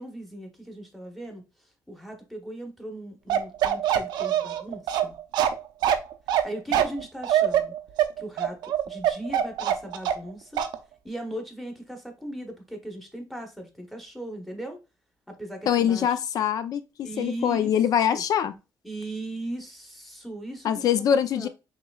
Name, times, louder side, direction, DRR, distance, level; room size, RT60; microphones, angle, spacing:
voice 1, 0.0-5.1 6.4-7.7 8.2-10.6 11.0-14.8 15.3-16.2 17.0-17.7 18.1-18.2 18.8-21.5, right 1 dB, ahead, 1.1 m, -38 dB
Bark, 3.3-10.3 10.6-10.8, right 10 dB, 85° right, 0.6 m, -23 dB
voice 2, 15.7-18.5 20.6-21.5, left 9 dB, 60° left, 0.5 m, -24 dB
5.7 x 3.1 x 2.4 m
cardioid pair, 135°, 7 cm